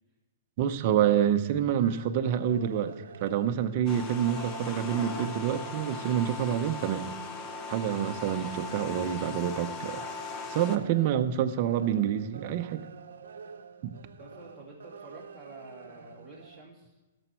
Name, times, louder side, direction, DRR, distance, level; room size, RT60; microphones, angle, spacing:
voice 1, 0.6-2.9 3.2-7.1 7.7-10.0 10.5-12.8 13.8-13.9, right 9 dB, 35° right, 8 dB, 0.7 m, -27 dB
sound 1, 1.7-16.6, right 7 dB, 85° right, 0.7 m, -48 dB
sound 2, 3.9-10.8, left 4 dB, 20° left, 0.7 m, -39 dB
voice 2, 14.2-16.9, right 2 dB, 5° left, -4 dB, 2.7 m, -49 dB
15.5 x 7.1 x 4.5 m, 1.2 s
hypercardioid pair, 160°, 0 cm